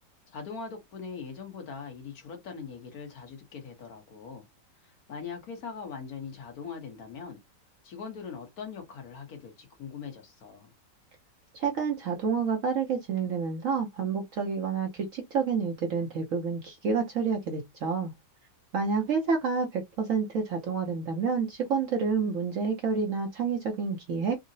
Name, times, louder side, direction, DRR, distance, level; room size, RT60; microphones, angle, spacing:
voice 1, 0.3-4.5 4.8-7.4 7.8-10.7, left 5 dB, 60° left, 1.3 m, -41 dB
voice 2, 11.5-18.1 18.7-24.4, right 5 dB, 60° right, 0.9 m, -29 dB
3.7 x 2.0 x 2.6 m
omnidirectional pair, 1.9 m